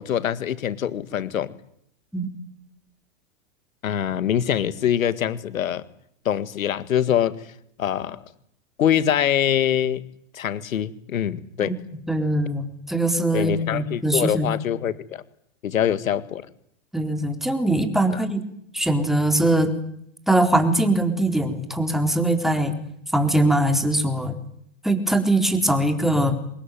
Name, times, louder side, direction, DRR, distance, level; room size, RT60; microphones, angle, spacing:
voice 1, 0.0-1.5 3.8-5.8 6.3-7.4 7.8-8.2 8.8-10.0 10.3-11.7 13.3-15.2 15.6-16.5 18.1-18.2, left 9 dB, 90° left, 15 dB, 1.9 m, -24 dB
voice 2, 12.1-14.5 16.9-18.4 18.7-19.7 20.3-22.7 23.1-24.3 24.8-26.4, right 1 dB, ahead, 6 dB, 4.0 m, -21 dB
25.5 x 20.5 x 9.3 m, 0.71 s
hypercardioid pair, 115°, 40 cm